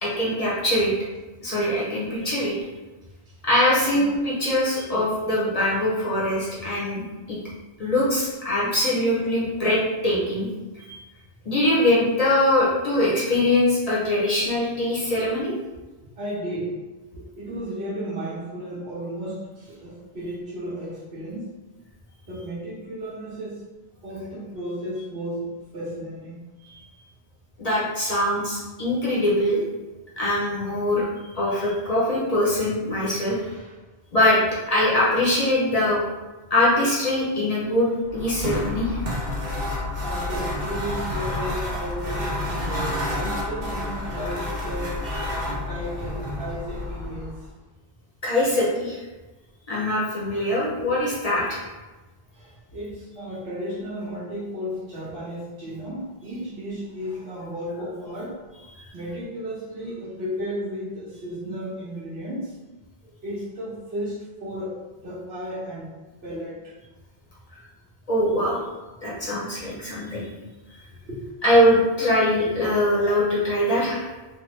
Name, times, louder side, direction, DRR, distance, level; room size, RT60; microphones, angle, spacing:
voice 1, 0.0-0.9 1.4-2.6 3.4-7.0 7.3-7.4 7.8-10.5 10.7-11.0 11.4-15.5 27.6-29.6 30.2-31.0 31.3-33.4 34.1-36.0 36.5-39.0 45.1-45.2 48.2-49.0 49.7-51.6 58.7-58.8 68.1-68.6 69.0-70.3 70.7-70.8 71.4-74.1, left 1 dB, 40° left, -6 dB, 0.7 m, -22 dB
voice 2, 16.0-16.8 17.2-21.5 22.3-23.7 24.0-26.4 33.4-33.7 40.0-45.1 45.4-47.3 49.8-49.9 52.3-58.4 58.9-62.5 63.2-65.9 66.2-66.7 71.1-71.4, equal, 75° right, -7 dB, 1.3 m, -34 dB
sound 1, 38.1-47.4, left 1 dB, 50° right, 0.8 m, -29 dB
3.1 x 2.2 x 3.1 m, 1.2 s
omnidirectional pair, 1.1 m